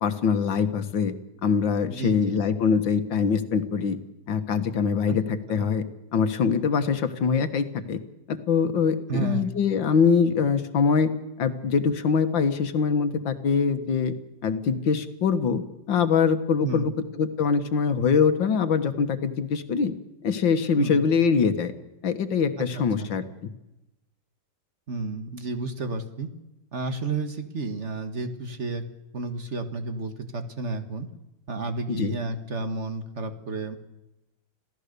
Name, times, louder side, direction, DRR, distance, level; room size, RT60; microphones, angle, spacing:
voice 1, 0.0-1.1 1.4-4.0 4.3-5.8 6.1-8.0 8.3-11.1 11.4-14.1 14.4-16.9 17.2-19.9 20.2-21.7 22.0-23.5 31.9-32.1, left 6 dB, 85° left, 9 dB, 2.1 m, -23 dB
voice 2, 1.9-2.4 5.1-5.2 5.5-5.6 9.1-9.5 16.6-16.9 20.8-21.0 22.7-23.1 24.9-26.3 26.7-28.8 29.1-31.1 31.5-33.8, right 3 dB, 40° right, 7 dB, 1.8 m, -31 dB
27.0 x 16.5 x 6.8 m, 0.94 s
omnidirectional pair, 2.0 m